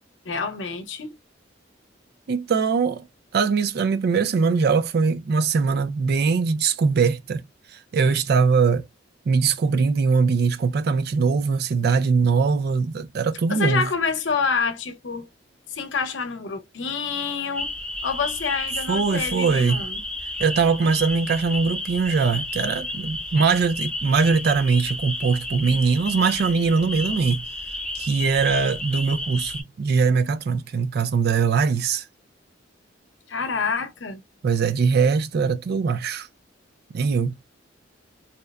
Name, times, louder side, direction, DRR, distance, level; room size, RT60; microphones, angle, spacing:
voice 1, 0.2-1.1 13.5-15.3 15.7-17.7 18.0-20.0 33.3-34.2, left 5 dB, 65° left, 0.7 m, -27 dB
voice 2, 2.3-3.0 3.3-7.4 7.9-8.9 9.3-13.9 18.9-19.8 20.4-27.4 27.9-32.0 34.4-36.3 36.9-37.4, right 5 dB, 55° right, 0.4 m, -21 dB
sound 1, 17.5-29.6, left 1 dB, 5° left, 0.4 m, -32 dB
2.8 x 2.1 x 2.2 m
head